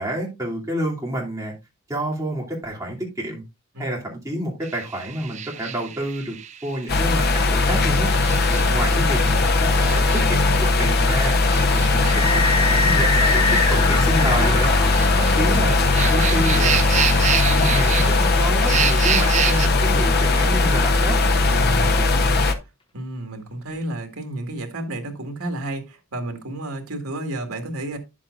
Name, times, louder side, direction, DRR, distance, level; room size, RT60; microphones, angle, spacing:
voice 1, 0.0-1.5 1.9-3.4 3.8-6.4 6.6-8.1 8.5-10.5 10.8-11.3 11.7-15.8 16.1-16.8 17.4-21.2, right 1 dB, 15° right, 2.8 m, -29 dB
sound 1, 4.6-19.7, right 9 dB, 30° right, 0.4 m, -30 dB
sound 2, 6.9-22.5, left 3 dB, 45° left, 0.9 m, -19 dB
sound 3, 11.4-20.8, left 3 dB, 25° left, 1.1 m, -27 dB
voice 2, 21.6-28.0, right 1 dB, 85° right, 1.9 m, -32 dB
10.0 x 7.3 x 2.5 m
head